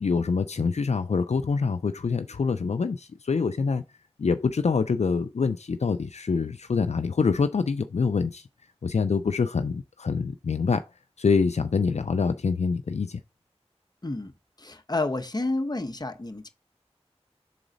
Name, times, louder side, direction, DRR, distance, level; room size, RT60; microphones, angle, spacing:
voice 1, 0.0-3.8 4.2-8.5 8.8-10.8 11.2-13.2, left 5 dB, 80° left, 0.4 m, -25 dB
voice 2, 14.0-14.3 14.6-16.5, left 2 dB, 35° left, 0.8 m, -30 dB
5.0 x 3.9 x 5.0 m
wide cardioid pair, 40°, 11 cm